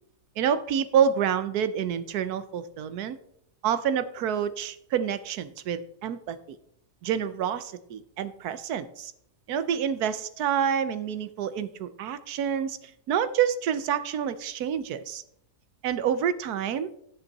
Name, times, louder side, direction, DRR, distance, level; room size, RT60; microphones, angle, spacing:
voice 1, 0.4-3.2 3.6-6.4 7.0-9.1 9.5-12.8 13.1-15.2 15.8-16.9, right 8 dB, 80° right, 13 dB, 1.3 m, -28 dB
13.5 x 6.3 x 4.1 m, 0.72 s
omnidirectional pair, 1.6 m